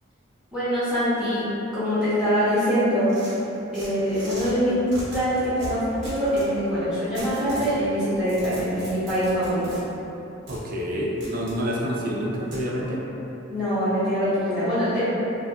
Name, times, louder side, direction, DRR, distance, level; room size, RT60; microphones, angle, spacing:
voice 1, 0.5-1.5 1.7-3.1 3.7-9.8 13.5-15.0, equal, 5° right, -15 dB, 0.9 m, -24 dB
sound 1, 3.1-4.5 4.9-6.5 7.1-7.7 8.1-9.8 10.5-10.6 11.2-11.6 12.5-12.6, right 1 dB, 65° right, 0.9 m, -39 dB
voice 2, 10.5-13.0, equal, 45° right, -3 dB, 0.4 m, -28 dB
2.7 x 2.3 x 2.3 m, 3.0 s
head